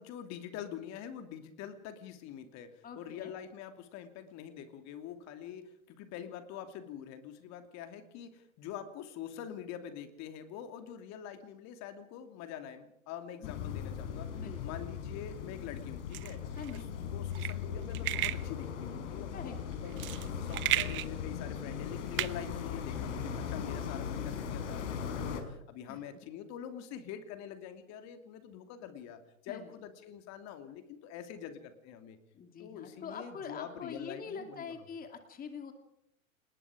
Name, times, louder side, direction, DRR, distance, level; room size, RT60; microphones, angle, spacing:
voice 1, 0.0-16.9 17.1-20.1 20.4-32.2 32.6-34.8, left 9 dB, 40° left, 8 dB, 2.8 m, -45 dB
voice 2, 2.8-3.3 13.4-13.7 14.4-14.8 16.6-16.9 19.3-19.6 25.9-26.0 29.5-29.7 32.3-35.7, left 6 dB, 20° left, 6 dB, 2.4 m, -44 dB
sound 1, 13.4-25.4, left 7 dB, 60° left, 4.9 m, -38 dB
sound 2, 16.1-23.3, right 16 dB, 30° right, 0.9 m, -36 dB
29.0 x 19.5 x 5.0 m, 0.75 s
hypercardioid pair, 110°, 42 cm